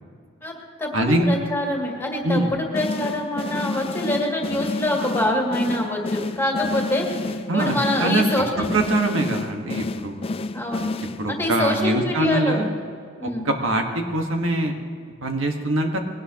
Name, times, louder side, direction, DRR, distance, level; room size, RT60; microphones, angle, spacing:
voice 1, 0.4-7.1 7.5-8.8 9.2-9.3 10.5-10.9 11.3-12.6 13.2-13.5, left 1 dB, 10° left, -1 dB, 2.2 m, -25 dB
voice 2, 0.9-1.3 2.2-2.5 7.5-8.2 8.6-10.2 11.2-12.7 13.2-14.7 15.2-16.0, right 1 dB, 70° right, 3 dB, 1.4 m, -23 dB
sound 1, 2.7-11.5, left 3 dB, 30° left, 0.3 m, -30 dB
21.0 x 18.0 x 2.9 m, 2.2 s
head